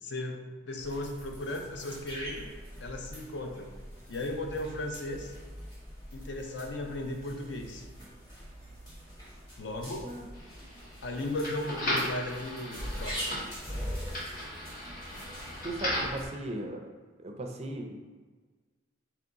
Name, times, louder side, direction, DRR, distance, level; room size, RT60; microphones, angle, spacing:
voice 1, 0.0-2.5 2.8-3.7 4.1-5.3 6.1-7.9 9.6-10.1 11.0-13.3, left 1 dB, 65° left, 3 dB, 0.5 m, -36 dB
sound 1, 0.8-16.3, equal, 20° left, 1.1 m, -43 dB
sound 2, 10.3-16.2, left 1 dB, 45° left, 1.1 m, -37 dB
voice 2, 15.6-16.9 17.2-18.0, right 2 dB, 35° right, 3 dB, 0.4 m, -37 dB
3.5 x 3.0 x 3.9 m, 1.4 s
head